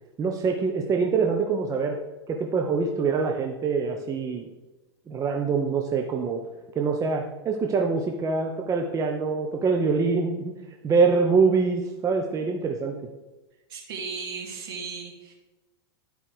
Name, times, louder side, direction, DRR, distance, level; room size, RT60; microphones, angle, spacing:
voice 1, 0.2-2.0 2.3-4.5 5.1-6.4 6.8-10.5 10.8-13.0, right 4 dB, 25° right, 3 dB, 0.7 m, -24 dB
voice 2, 13.7-15.3, right 5 dB, 60° right, 0 dB, 2.2 m, -36 dB
11.0 x 5.0 x 3.2 m, 1.1 s
figure-of-eight pair, 90°, 14 cm